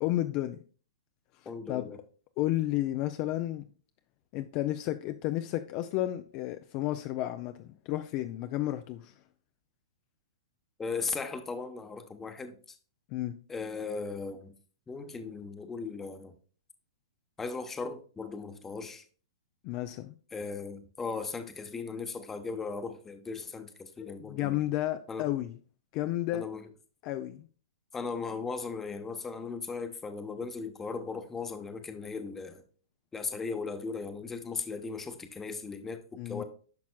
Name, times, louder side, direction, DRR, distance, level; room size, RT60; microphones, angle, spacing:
voice 1, 0.0-0.6 1.3-1.9 2.4-3.7 4.3-9.1 13.1-13.4 19.6-20.1 24.0-25.6 25.9-26.4 27.0-27.5 36.2-36.4, left 15 dB, 40° left, 0.4 m, -32 dB
voice 2, 1.5-2.0 10.8-12.8 13.5-14.5 14.9-16.3 17.4-19.0 20.3-24.6 25.1-25.3 26.3-26.6 27.9-32.6 33.1-36.4, left 4 dB, 10° left, 0.9 m, -37 dB
10.5 x 5.9 x 2.3 m
hypercardioid pair, 130°, 2 cm